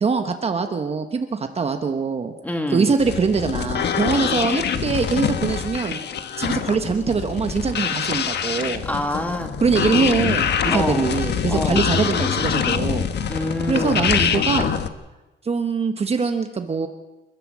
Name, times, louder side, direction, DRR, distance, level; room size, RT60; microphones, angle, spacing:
voice 1, 0.0-2.3 2.7-6.0 6.4-8.8 9.6-13.1 13.7-14.7 15.4-16.9, right 5 dB, 30° right, 6 dB, 1.2 m, -23 dB
voice 2, 2.4-2.9 8.8-9.6 10.7-11.2 11.5-11.9 13.3-14.1, left 1 dB, 10° left, 5 dB, 2.3 m, -26 dB
sound 1, 3.0-14.9, left 7 dB, 60° left, 1.4 m, -24 dB
29.5 x 14.5 x 7.5 m, 1.1 s
wide cardioid pair, 170°, 20 cm